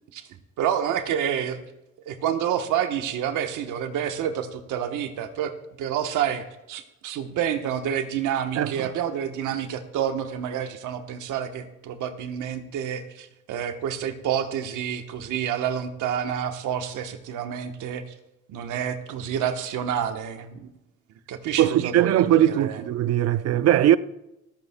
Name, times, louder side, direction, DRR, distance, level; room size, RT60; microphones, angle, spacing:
voice 1, 0.6-1.6 2.1-5.5 5.8-18.0 18.5-20.7 21.3-22.8, right 9 dB, 85° right, 1.1 m, -28 dB
voice 2, 8.6-8.9 21.6-24.0, right 12 dB, 55° right, 0.5 m, -20 dB
25.0 x 8.4 x 2.2 m
cardioid pair, 90°, 30 cm